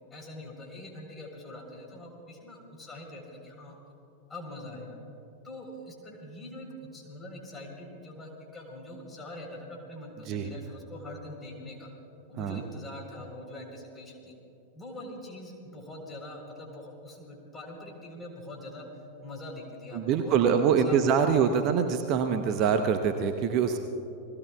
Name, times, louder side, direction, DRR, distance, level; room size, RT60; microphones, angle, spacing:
voice 1, 0.1-3.8 4.3-5.0 5.4-11.9 12.3-14.3 14.7-18.9 19.2-21.5, left 1 dB, 15° left, 0 dB, 3.8 m, -43 dB
voice 2, 19.9-23.8, right 7 dB, 40° right, 7 dB, 0.8 m, -24 dB
30.0 x 20.0 x 2.3 m, 2.8 s
figure-of-eight pair, 90°, 0 cm